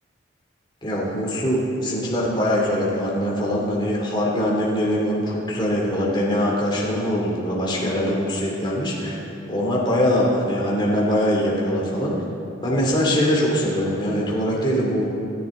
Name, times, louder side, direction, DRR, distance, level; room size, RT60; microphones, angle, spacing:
voice 1, 0.8-9.2 9.5-12.1 12.6-15.0, equal, 25° left, -4 dB, 2.7 m, -22 dB
26.5 x 10.5 x 3.8 m, 2.9 s
head